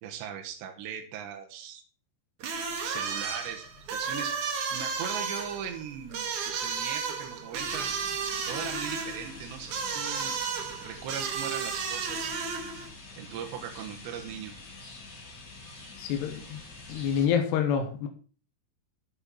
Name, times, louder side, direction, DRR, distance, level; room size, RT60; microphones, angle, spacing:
voice 1, 0.0-1.8 2.8-4.4 4.7-8.0 8.5-10.3 10.8-12.5 13.2-14.5, right 8 dB, 75° right, 3.5 m, -39 dB
sound 1, 2.4-12.9, right 5 dB, 55° right, 2.5 m, -33 dB
sound 2, 7.5-17.3, left 3 dB, 40° left, 1.6 m, -46 dB
voice 2, 16.0-16.6 16.9-18.1, left 8 dB, 75° left, 3.1 m, -27 dB
9.7 x 6.5 x 5.8 m
omnidirectional pair, 5.2 m